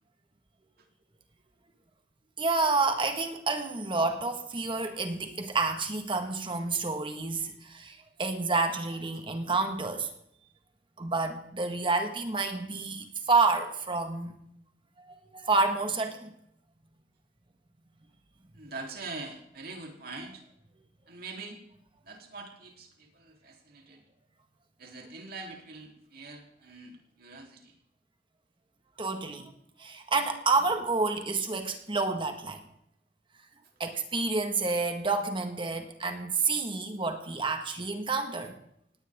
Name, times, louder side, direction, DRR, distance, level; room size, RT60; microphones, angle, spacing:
voice 1, 2.4-10.1 11.0-14.3 15.3-16.3 29.0-29.5 29.8-32.6 33.8-38.5, right 3 dB, 30° right, 5 dB, 1.7 m, -29 dB
voice 2, 18.5-20.4 21.1-21.6 22.0-24.0 24.8-27.8, right 3 dB, 55° right, 2 dB, 3.6 m, -43 dB
19.0 x 18.0 x 3.7 m, 0.75 s
head